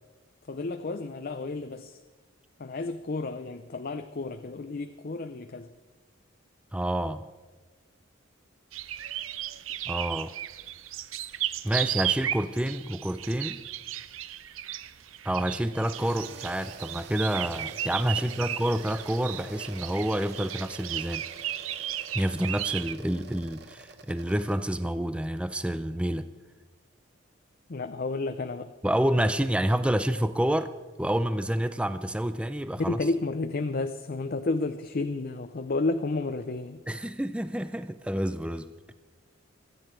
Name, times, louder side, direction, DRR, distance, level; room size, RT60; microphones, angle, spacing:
voice 1, 0.5-2.0 2.6-5.7 27.7-28.7 32.8-37.0, left 3 dB, 45° left, 8 dB, 0.6 m, -31 dB
voice 2, 6.7-7.3 9.9-10.3 11.6-13.6 15.2-21.2 22.1-26.3 28.8-30.7 31.0-33.0 36.9-38.9, right 1 dB, 5° right, 12 dB, 0.4 m, -28 dB
sound 1, 8.7-22.9, right 12 dB, 80° right, 0.6 m, -35 dB
sound 2, 15.7-24.6, right 4 dB, 55° right, 0.9 m, -47 dB
27.5 x 9.6 x 4.5 m, 1.3 s
head